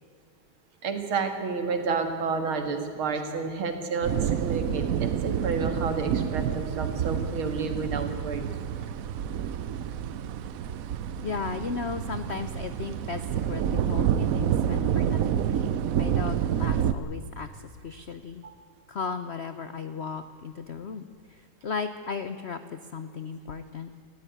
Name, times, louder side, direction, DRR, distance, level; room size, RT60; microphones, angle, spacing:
voice 1, 0.8-8.5 18.4-18.5, right 4 dB, 90° right, 6 dB, 2.7 m, -30 dB
sound 1, 4.0-16.9, right 9 dB, 70° right, 0.8 m, -28 dB
voice 2, 11.2-18.4 18.9-23.9, left 5 dB, 85° left, 11 dB, 0.5 m, -36 dB
20.0 x 15.0 x 9.3 m, 2.5 s
omnidirectional pair, 2.2 m